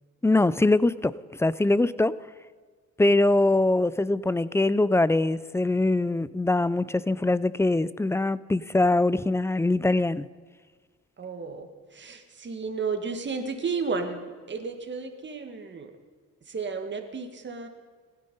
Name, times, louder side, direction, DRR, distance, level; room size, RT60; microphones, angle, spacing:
voice 1, 0.2-1.1 1.4-2.1 3.0-10.3, left 2 dB, 10° left, 18 dB, 0.4 m, -23 dB
voice 2, 11.2-15.9 16.4-17.7, right 4 dB, 40° right, 6 dB, 1.8 m, -33 dB
16.5 x 12.0 x 5.4 m, 1.5 s
cardioid pair, 90°, 30 cm